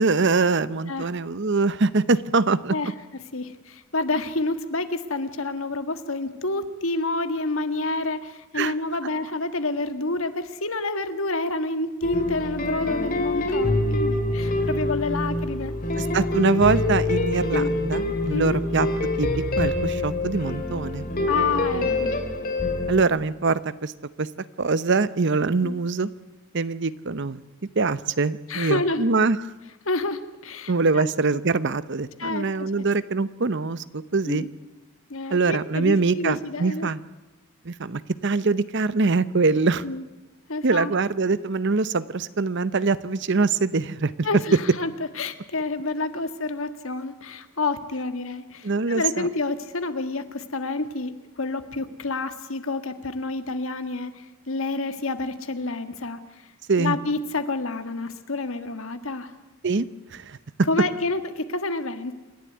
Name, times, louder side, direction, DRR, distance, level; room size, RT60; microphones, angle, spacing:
voice 1, 0.0-2.7 8.6-8.7 16.0-18.9 19.2-21.1 22.9-23.9 24.2-24.3 24.6-26.1 26.5-27.4 27.8-29.4 30.7-34.5 35.3-37.0 37.6-39.8 40.6-44.1 48.6-49.3 56.7-57.0 59.6-60.4, right 4 dB, 55° right, 16 dB, 0.8 m, -23 dB
voice 2, 3.3-16.0 17.5-17.8 18.3-18.6 21.3-22.2 25.6-25.7 28.5-29.1 29.9-31.1 32.2-32.7 34.2-34.5 35.1-36.9 39.8-40.0 40.5-40.9 44.2-56.2 56.8-59.3 60.7-62.1, left 2 dB, 70° left, 10 dB, 1.6 m, -29 dB
sound 1, 12.0-23.0, left 2 dB, 40° left, 2.7 m, -25 dB
27.5 x 11.5 x 9.6 m, 1.1 s
head